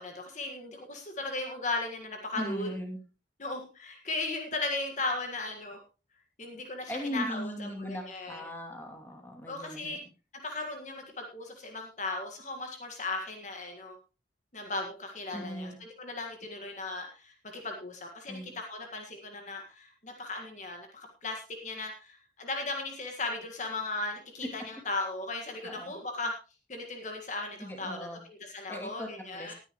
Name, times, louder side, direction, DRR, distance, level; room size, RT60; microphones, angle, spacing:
voice 1, 0.0-2.7 3.4-5.8 6.4-8.4 9.5-10.0 10.4-14.0 14.5-26.3 26.7-29.5, left 2 dB, 45° left, 3 dB, 1.8 m, -37 dB
voice 2, 2.3-3.0 6.9-10.0 15.3-15.8 18.3-18.5 25.6-25.9 27.6-28.2 28.7-29.5, equal, 10° left, 2 dB, 2.6 m, -38 dB
19.5 x 9.9 x 3.1 m, 0.32 s
head